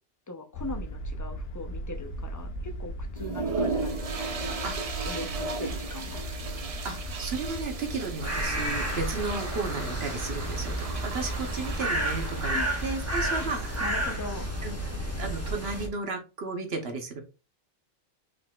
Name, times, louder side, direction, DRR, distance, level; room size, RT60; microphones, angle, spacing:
voice 1, 0.3-4.6 5.1-6.3 12.5-12.7 13.4-13.5 13.8-14.5, left 3 dB, 25° left, 0.4 m, -40 dB
sound 1, 0.5-15.6, equal, 65° left, 0.9 m, -37 dB
sound 2, 3.2-14.1, right 4 dB, 45° right, 0.5 m, -36 dB
voice 2, 4.6-5.1 6.8-13.9 14.6-14.7 15.2-17.2, right 4 dB, 65° right, 1.0 m, -34 dB
sound 3, 8.2-15.9, right 1 dB, 15° right, 1.2 m, -32 dB
5.0 x 3.9 x 2.3 m
omnidirectional pair, 1.2 m